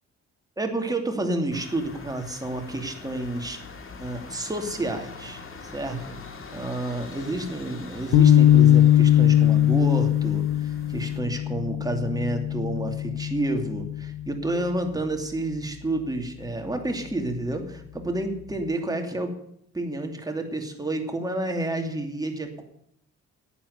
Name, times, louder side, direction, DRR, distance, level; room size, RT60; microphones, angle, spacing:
voice 1, 0.6-3.6 4.0-5.4 5.7-6.2 6.5-19.3 19.7-22.6, right 2 dB, 10° right, 3 dB, 2.7 m, -30 dB
sound 1, 1.5-11.2, left 4 dB, 45° left, 2.3 m, -42 dB
sound 2, 8.1-14.6, left 12 dB, 75° left, 0.9 m, -20 dB
11.0 x 9.0 x 8.0 m, 0.73 s
cardioid pair, 90°, 30 cm